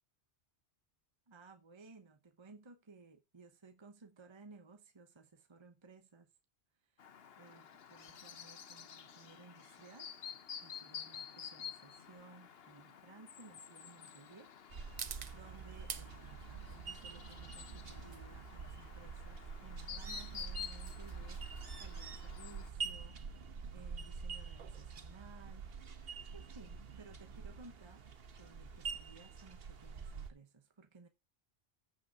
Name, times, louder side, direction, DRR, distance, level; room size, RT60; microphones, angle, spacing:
voice 1, 1.3-6.3 6.8-10.1 10.6-14.8 15.3-25.7 26.3-28.1 28.3-31.1, right 4 dB, 25° right, 1.0 m, -58 dB
Chirp tweet, 7.0-22.7, left 8 dB, 65° left, 1.0 m, -51 dB
sound 1, 9.5-26.0, right 7 dB, 45° right, 0.7 m, -54 dB
sound 2, 14.7-30.3, right 5 dB, 60° right, 1.3 m, -46 dB
14.5 x 5.6 x 3.6 m
omnidirectional pair, 1.1 m